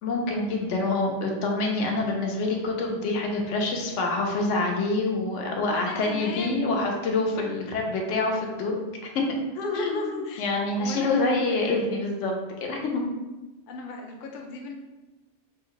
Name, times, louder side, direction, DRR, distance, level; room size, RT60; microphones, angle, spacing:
voice 1, 0.0-8.9 9.1-9.2 9.7-12.3 12.6-13.0, left 2 dB, 85° left, 1 dB, 1.0 m, -26 dB
voice 2, 5.6-6.8 9.6-11.9 13.7-14.7, left 3 dB, 55° left, 1 dB, 0.6 m, -35 dB
3.3 x 2.1 x 3.8 m, 1.1 s
omnidirectional pair, 1.2 m